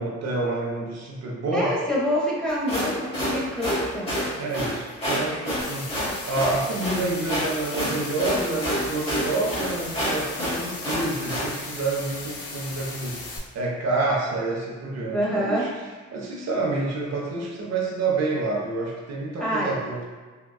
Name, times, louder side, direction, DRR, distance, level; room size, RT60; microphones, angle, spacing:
voice 1, 0.0-1.7 4.4-13.2 13.5-15.7 16.1-20.0, right 3 dB, 60° right, -2 dB, 0.6 m, -28 dB
voice 2, 1.5-4.2 15.1-15.7 19.4-19.8, equal, 5° left, -7 dB, 0.8 m, -26 dB
sound 1, 2.5-11.5, equal, 20° left, 1.4 m, -28 dB
sound 2, 5.6-13.4, left 3 dB, 50° left, 0.6 m, -37 dB
3.5 x 2.2 x 2.2 m, 1.4 s
cardioid pair, 90°, 30 cm